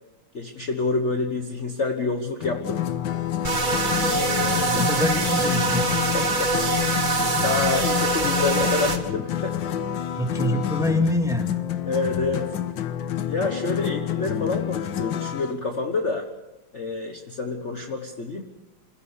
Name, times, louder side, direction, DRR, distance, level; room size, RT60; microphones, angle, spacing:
voice 1, 0.3-2.8 4.0-4.9 6.1-6.5 6.9-9.6 11.8-12.5 13.3-16.3 16.7-18.4, left 3 dB, 40° left, 4 dB, 1.4 m, -28 dB
sound 1, 2.4-15.5, left 11 dB, 65° left, 1.6 m, -28 dB
sound 2, 3.4-9.0, right 3 dB, 25° right, 1.4 m, -24 dB
voice 2, 4.7-5.9 10.2-11.5, left 1 dB, ahead, 3 dB, 2.1 m, -25 dB
26.5 x 16.0 x 6.6 m, 0.99 s
omnidirectional pair, 2.4 m